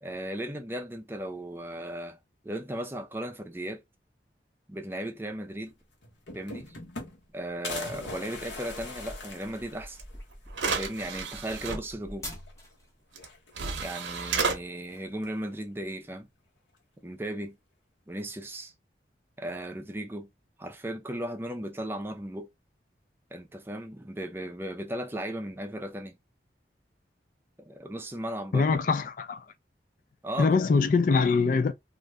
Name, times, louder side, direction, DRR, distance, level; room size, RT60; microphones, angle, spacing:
voice 1, 0.0-2.2 2.4-3.8 4.7-5.7 6.3-6.8 7.3-10.0 10.7-12.3 13.8-16.3 17.0-17.6 18.1-18.7 19.4-20.3 20.6-22.5 23.3-26.2 27.6-28.7 30.2-30.5, right 1 dB, 10° right, 0.5 m, -36 dB
sound 1, 5.7-5.8 6.0-7.3 7.6-10.2 10.7-10.8 11.0-11.1 12.3-12.7 13.1-13.8 14.9-15.5, left 3 dB, 90° left, 1.1 m, -41 dB
sound 2, 8.2-12.9, equal, 15° left, 0.9 m, -45 dB
sound 3, 10.0-10.1 10.5-11.8 13.2-13.3 13.6-14.6, right 5 dB, 85° right, 0.7 m, -31 dB
voice 2, 28.5-29.4 30.4-31.7, left 4 dB, 45° left, 0.3 m, -23 dB
2.5 x 2.5 x 3.2 m
head